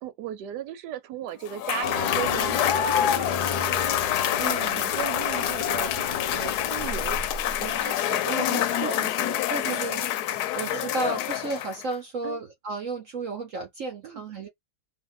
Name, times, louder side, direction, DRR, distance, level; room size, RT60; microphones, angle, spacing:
voice 1, 0.0-6.1 6.3-9.4 9.7-9.9 10.7-10.9 12.2-12.4 14.0-14.2, right 11 dB, 85° right, 1.2 m, -37 dB
Cheering / Applause / Crowd, 1.5-11.9, left 11 dB, 75° left, 1.1 m, -27 dB
sound 1, 1.8-7.9, left 4 dB, 45° left, 0.9 m, -34 dB
voice 2, 4.4-4.8 8.3-9.0 9.5-10.0 10.5-14.5, right 3 dB, 60° right, 1.1 m, -33 dB
2.8 x 2.5 x 3.8 m
omnidirectional pair, 1.8 m